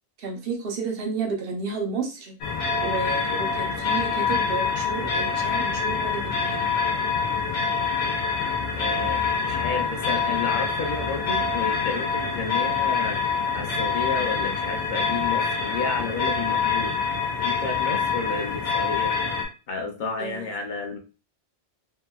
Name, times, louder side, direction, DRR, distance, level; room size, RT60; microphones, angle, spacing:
voice 1, 0.2-2.3 2.8-6.7 20.2-20.6, right 4 dB, 65° right, 2 dB, 0.9 m, -31 dB
sound 1, 2.4-19.5, left 5 dB, 90° left, 1.0 m, -25 dB
voice 2, 8.8-13.2 13.5-16.9 17.4-19.2 19.7-21.0, left 4 dB, 55° left, 2 dB, 0.6 m, -31 dB
2.8 x 2.6 x 2.3 m, 0.33 s
omnidirectional pair, 1.1 m